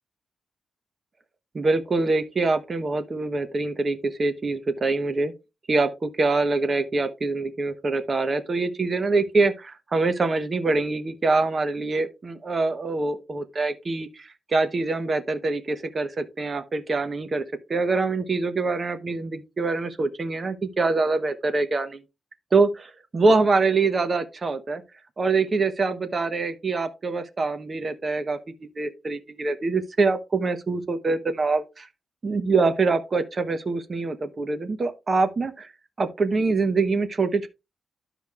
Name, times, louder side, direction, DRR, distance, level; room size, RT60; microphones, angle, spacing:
voice 1, 1.5-5.3 5.7-17.4 17.7-22.0 22.5-24.8 25.2-28.4 28.8-31.9 32.2-35.7 36.0-37.5, right 3 dB, 35° right, 0.9 m, -24 dB
12.5 x 5.0 x 2.4 m
wide cardioid pair, 135°, 0 cm